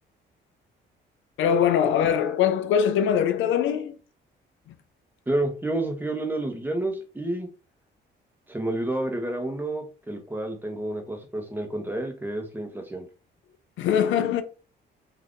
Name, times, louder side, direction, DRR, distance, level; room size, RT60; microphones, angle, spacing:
voice 1, 1.4-4.0 4.7-4.8 13.8-14.4, left 8 dB, 80° left, 0.4 m, -22 dB
voice 2, 5.3-7.5 8.5-13.0, right 1 dB, 10° right, 0.9 m, -29 dB
2.7 x 2.5 x 3.5 m
cardioid pair, 90°, 20 cm